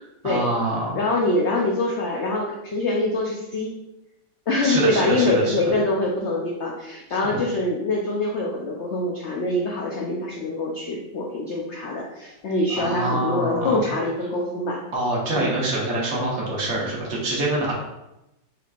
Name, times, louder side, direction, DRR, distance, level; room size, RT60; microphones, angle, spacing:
voice 1, 0.2-1.0 4.6-5.5 7.1-7.4 12.7-13.8 14.9-17.7, right 2 dB, 55° right, -3 dB, 1.3 m, -25 dB
voice 2, 0.9-3.7 4.5-14.8 15.3-15.5, left 2 dB, 80° left, -2 dB, 0.6 m, -24 dB
4.7 x 3.4 x 2.4 m, 0.92 s
omnidirectional pair, 1.9 m